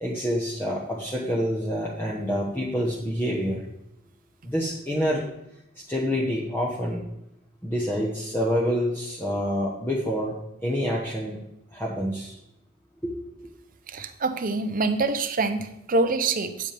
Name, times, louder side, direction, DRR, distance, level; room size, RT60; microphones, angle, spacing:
voice 1, 0.0-3.7 4.4-5.3 5.9-7.0 7.6-10.3 10.6-11.4 11.7-12.3 13.0-13.1 13.4-13.5, equal, 10° left, -4 dB, 1.0 m, -27 dB
voice 2, 13.9-16.7, right 3 dB, 40° right, 9 dB, 0.7 m, -25 dB
9.2 x 8.3 x 3.4 m, 0.84 s
head